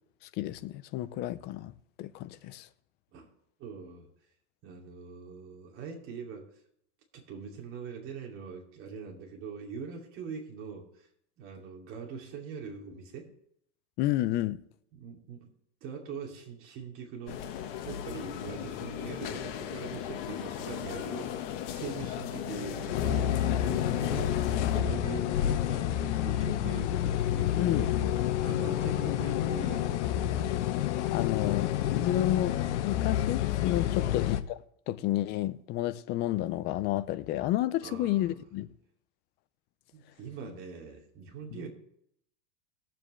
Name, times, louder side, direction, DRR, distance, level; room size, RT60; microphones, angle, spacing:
voice 1, 0.4-1.7 2.0-2.7 14.0-14.6 27.6-27.9 30.4-30.5 31.1-34.4 34.9-38.7 41.5-41.6, left 14 dB, 30° left, 0.5 m, -31 dB
voice 2, 3.6-4.1 4.6-6.5 7.1-11.1 11.4-13.3 14.9-15.5 15.8-21.3 21.7-24.4 24.7-27.9 28.4-30.0 34.0-34.2 37.8-38.4 39.9-41.7, right 5 dB, 35° right, 2.7 m, -42 dB
sound 1, 17.3-24.8, left 10 dB, 50° left, 1.3 m, -37 dB
sound 2, 22.9-34.4, left 11 dB, 70° left, 0.9 m, -29 dB
21.5 x 7.6 x 3.2 m
supercardioid pair, 145°, 36 cm